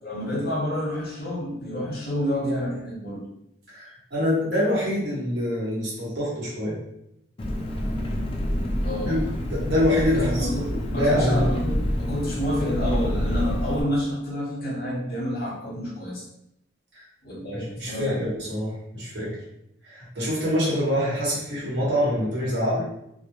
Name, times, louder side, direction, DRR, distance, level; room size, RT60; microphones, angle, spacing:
voice 1, 0.0-3.2 8.8-9.2 10.1-16.2 17.2-18.2, left 1 dB, 55° left, -4 dB, 0.8 m, -29 dB
voice 2, 3.7-6.8 9.0-9.2 9.4-11.5 16.9-17.0 17.5-19.4 19.8-22.9, equal, 65° right, -6 dB, 1.0 m, -25 dB
Engine, 7.4-13.8, equal, 30° left, 0.3 m, -27 dB
2.2 x 2.1 x 2.9 m, 0.80 s
head